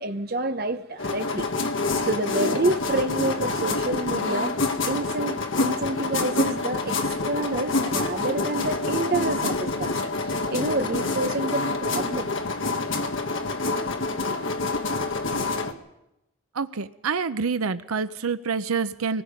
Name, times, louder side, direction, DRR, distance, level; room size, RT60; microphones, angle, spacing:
voice 1, 0.0-1.5 2.0-4.5 4.8-7.0 7.3-12.3, right 2 dB, 45° right, 1.0 m, -28 dB
sound 1, 1.0-15.7, left 3 dB, 60° left, 1.6 m, -27 dB
voice 2, 16.5-19.2, right 5 dB, 85° right, 0.7 m, -27 dB
25.5 x 20.0 x 5.3 m
head